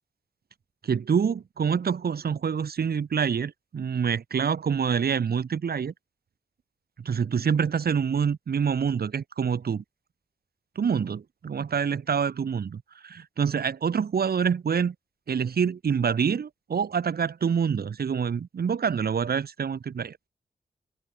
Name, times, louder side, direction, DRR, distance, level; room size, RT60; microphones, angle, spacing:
voice 1, 0.8-5.9 7.0-9.8 10.8-14.9 15.3-20.3, right 6 dB, 80° right, 1.8 m, -26 dB
wide cardioid pair, 75°, 16 cm